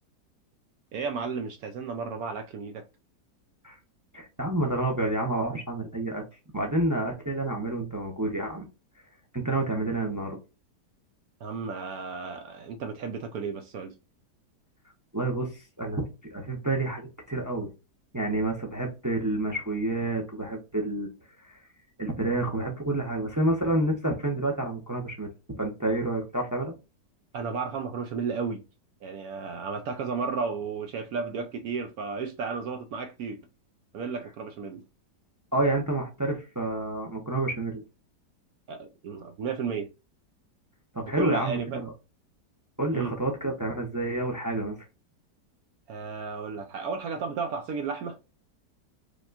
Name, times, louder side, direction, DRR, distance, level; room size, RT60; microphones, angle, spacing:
voice 1, 0.9-2.8 11.4-13.9 27.3-28.6 29.0-33.4 33.9-34.8 38.7-39.9 41.2-41.8 42.9-43.1 45.9-48.2, right 5 dB, 70° right, 0.9 m, -33 dB
voice 2, 4.1-6.2 6.5-8.7 9.3-10.4 15.1-17.7 18.1-21.1 21.4-21.6 22.0-25.3 25.5-26.7 35.5-37.8 40.9-41.9 42.8-44.8, right 2 dB, 25° right, 0.4 m, -29 dB
5.1 x 3.0 x 2.4 m
omnidirectional pair, 1.9 m